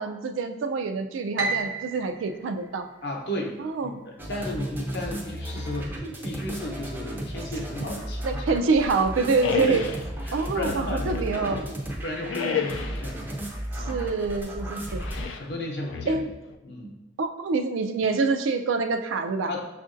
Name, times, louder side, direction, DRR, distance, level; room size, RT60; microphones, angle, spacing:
voice 1, 0.0-2.9 3.6-4.0 8.2-9.8 10.3-11.6 13.7-15.0 16.1-16.3 17.2-19.5, right 4 dB, 90° right, 7 dB, 0.4 m, -26 dB
Piano, 1.4-3.6, right 3 dB, 70° right, 0.7 m, -33 dB
voice 2, 3.0-8.6 9.7-9.8 10.3-11.6 12.0-13.3 13.8-14.1 15.3-16.3 16.6-16.9 19.5-19.6, left 1 dB, 60° left, 0 dB, 0.7 m, -34 dB
sound 1, 4.2-15.3, right 1 dB, 10° right, 0.4 m, -34 dB
sound 2, 9.4-10.0 10.6-11.8 12.3-13.1 15.0-15.5 15.9-16.6, left 6 dB, 80° left, 0.3 m, -31 dB
6.3 x 2.5 x 2.5 m, 0.97 s
head